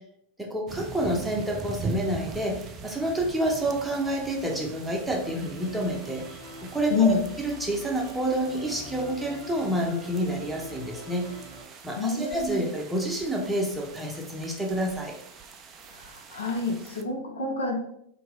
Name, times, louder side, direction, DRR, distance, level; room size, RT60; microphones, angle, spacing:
voice 1, 0.4-6.3 6.6-7.2 7.4-11.3 11.8-15.1, right 1 dB, 5° right, -1 dB, 0.7 m, -28 dB
sound 1, 0.7-17.0, right 4 dB, 30° right, 0.4 m, -42 dB
Musical instrument, 5.2-11.6, equal, 45° left, 1.5 m, -44 dB
voice 2, 6.9-7.3 12.0-12.6 15.9-17.7, left 4 dB, 70° left, 1 dB, 0.6 m, -27 dB
2.8 x 2.6 x 3.9 m, 0.73 s
figure-of-eight pair, 90°, 0 cm